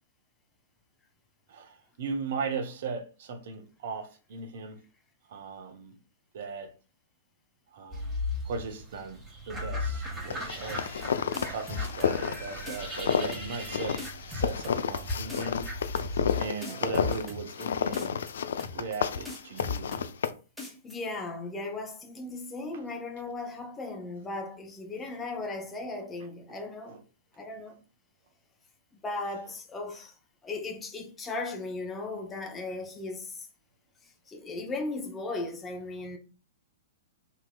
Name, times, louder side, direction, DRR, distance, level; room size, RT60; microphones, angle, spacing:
voice 1, 1.5-4.8 5.3-5.9 6.3-6.7 7.7-9.2 9.5-11.0 11.5-15.7 16.4-18.2 18.7-19.9 26.9-27.0, right 4 dB, 55° right, 0.7 m, -38 dB
sound 1, 7.9-16.4, left 2 dB, 15° right, 1.4 m, -37 dB
sound 2, 10.3-20.3, left 7 dB, 60° left, 0.3 m, -31 dB
sound 3, 10.7-11.1 11.3-12.4 12.7-13.0 13.3-13.7 14.0-15.0 15.3-15.7 16.0-16.3 16.6-17.7 17.9-18.3 18.6-19.0 19.3-20.3 20.6-21.0, left 4 dB, ahead, 1.3 m, -38 dB
voice 2, 20.6-27.0 27.3-27.8 29.0-30.1 30.4-33.5 34.3-36.2, left 2 dB, 15° left, 0.7 m, -37 dB
3.8 x 2.9 x 2.2 m
figure-of-eight pair, 105°, 0 cm